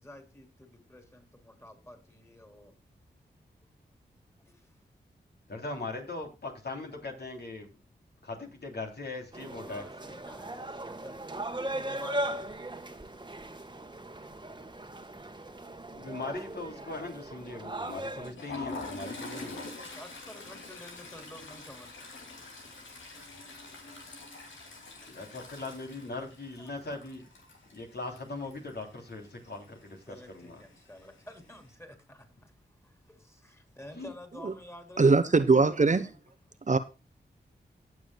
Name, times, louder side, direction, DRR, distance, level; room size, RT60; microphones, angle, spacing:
voice 1, 0.0-2.7 9.6-12.5 16.7-17.0 17.3-17.7 19.3-21.9 26.6-26.9 29.4-29.7 30.1-32.3 33.3-35.0 35.8-36.2, left 1 dB, 15° left, 3.6 m, -50 dB
voice 2, 5.5-7.7 8.2-9.8 15.9-19.7 25.1-27.3 27.7-30.6 33.9-34.1, left 2 dB, 60° left, 3.4 m, -40 dB
sound 1, 9.3-18.3, right 1 dB, 25° right, 1.5 m, -38 dB
Toilet flush, 18.1-28.8 29.1-29.3 29.6-29.8 30.8-31.3, left 2 dB, 85° left, 2.8 m, -44 dB
voice 3, 35.0-36.1 36.7-36.8, right 4 dB, 40° right, 1.0 m, -21 dB
17.5 x 7.2 x 2.3 m
cardioid pair, 40°, 19 cm